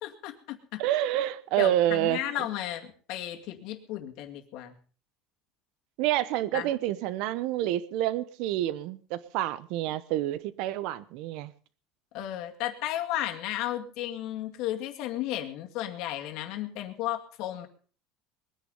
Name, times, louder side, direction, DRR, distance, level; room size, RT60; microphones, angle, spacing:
voice 1, 0.0-0.8 1.6-4.7 6.5-6.7 12.1-17.7, left 13 dB, 55° left, 4 dB, 2.2 m, -34 dB
voice 2, 0.8-2.2 6.0-11.5, right 13 dB, 60° right, 17 dB, 1.0 m, -28 dB
21.0 x 10.0 x 5.5 m, 0.42 s
cardioid pair, 170°, 0 cm